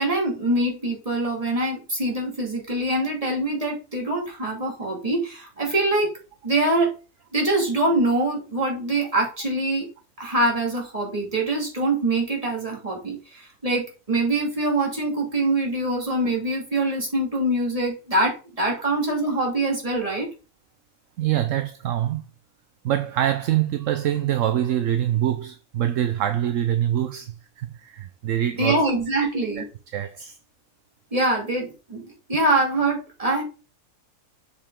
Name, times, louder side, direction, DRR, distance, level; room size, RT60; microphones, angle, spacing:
voice 1, 0.0-6.1 6.4-6.9 7.3-9.9 10.2-20.3 28.6-29.7 31.1-33.4, right 2 dB, 25° right, 2.4 m, -24 dB
voice 2, 21.2-22.2 22.8-28.8 29.2-29.6 29.9-30.4, right 11 dB, 70° right, 0.9 m, -25 dB
7.2 x 5.1 x 3.6 m
omnidirectional pair, 1.5 m